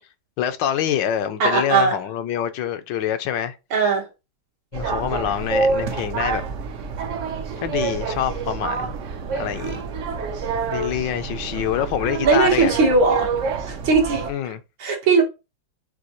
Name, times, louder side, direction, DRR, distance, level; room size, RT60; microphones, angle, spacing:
voice 1, 0.4-3.6 4.7-6.4 7.6-9.0 9.4-9.8 10.7-12.7 14.3-14.6, left 10 dB, 75° left, 1.2 m, -25 dB
voice 2, 1.4-1.9 3.7-4.1 12.2-13.3 13.7-14.5 14.8-15.2, right 4 dB, 90° right, 2.2 m, -19 dB
sound 1, 4.7-14.3, right 5 dB, 70° right, 0.7 m, -27 dB
6.1 x 2.7 x 3.0 m
omnidirectional pair, 2.1 m